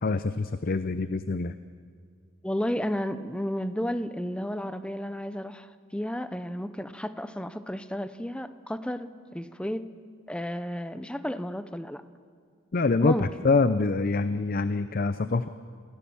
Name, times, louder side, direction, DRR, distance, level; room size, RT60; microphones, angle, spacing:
voice 1, 0.0-1.5 12.7-15.5, left 3 dB, 45° left, 12 dB, 0.5 m, -25 dB
voice 2, 2.4-9.8 10.3-12.0 13.0-13.3, equal, 5° left, 12 dB, 0.7 m, -32 dB
27.5 x 16.5 x 7.1 m, 2.1 s
head